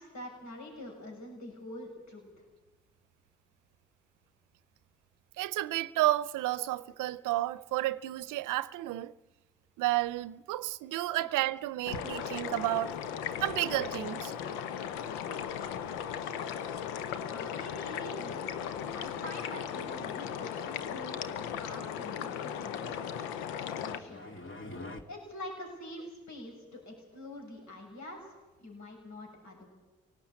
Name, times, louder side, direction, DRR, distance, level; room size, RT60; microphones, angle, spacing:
voice 1, 0.0-2.3 11.2-11.3 17.3-18.4 18.9-23.4 23.8-24.4 25.1-28.3 28.6-29.7, left 1 dB, 65° left, 6.6 m, -45 dB
voice 2, 5.4-9.1 9.8-12.9 13.4-14.3, right 16 dB, 75° right, 0.7 m, -31 dB
sound 1, 11.9-24.0, left 8 dB, 90° left, 0.9 m, -37 dB
sound 2, 23.2-25.0, left 2 dB, 40° left, 2.6 m, -46 dB
25.0 x 18.0 x 8.8 m
hypercardioid pair, 40°, 31 cm